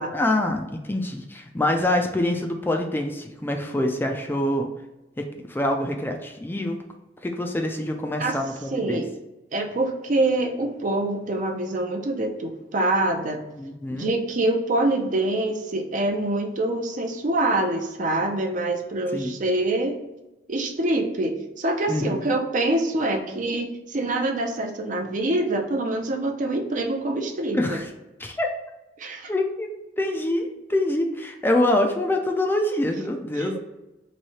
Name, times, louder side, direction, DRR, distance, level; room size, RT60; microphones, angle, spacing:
voice 1, 0.0-4.7 5.2-6.8 7.2-9.0 13.6-14.1 19.1-19.3 21.9-22.3 27.5-27.9 28.2-28.5 29.3-29.7 30.0-33.6, left 1 dB, 10° left, 3 dB, 0.4 m, -25 dB
voice 2, 8.7-9.1 9.5-13.4 13.9-20.0 20.5-27.8 29.0-29.3 33.4-33.6, right 2 dB, 50° right, 4 dB, 0.6 m, -25 dB
3.1 x 2.7 x 4.1 m, 0.99 s
head